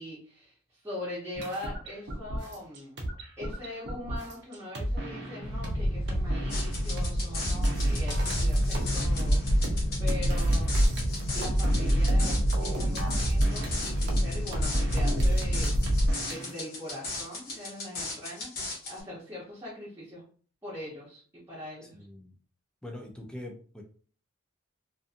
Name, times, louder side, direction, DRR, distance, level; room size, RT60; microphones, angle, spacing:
voice 1, 0.0-3.0 3.4-10.7 11.3-15.7 16.3-20.2 20.6-22.0, left 1 dB, 10° right, -9 dB, 0.8 m, -42 dB
sound 1, 1.3-5.7 6.1-7.1 7.4-16.5, right 1 dB, 55° right, 0.6 m, -34 dB
sound 2, 5.4-16.1, equal, 85° left, 0.5 m, -27 dB
sound 3, 6.5-19.0, left 2 dB, 45° left, 0.9 m, -38 dB
voice 2, 21.8-22.3 22.8-23.8, left 1 dB, 5° left, 1 dB, 0.4 m, -43 dB
2.5 x 2.5 x 2.4 m, 0.42 s
head